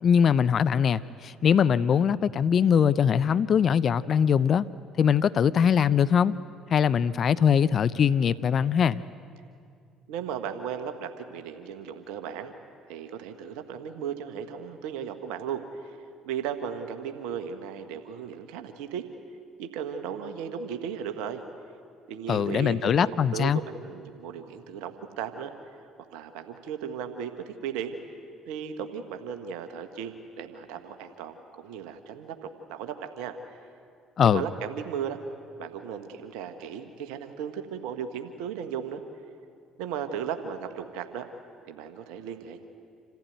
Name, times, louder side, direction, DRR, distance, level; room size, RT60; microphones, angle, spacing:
voice 1, 0.0-4.7 5.0-6.3 6.7-9.0 22.3-23.6 34.2-34.4, left 7 dB, 50° left, 16 dB, 0.5 m, -22 dB
voice 2, 10.1-12.5 12.9-16.0 16.2-19.0 19.6-21.4 22.1-25.5 26.1-28.0 28.5-33.4 34.2-35.2 35.6-39.0 39.8-41.3 41.7-42.6, right 8 dB, 75° right, 8 dB, 1.3 m, -36 dB
27.5 x 15.0 x 9.3 m, 2.4 s
hypercardioid pair, 60°, 0 cm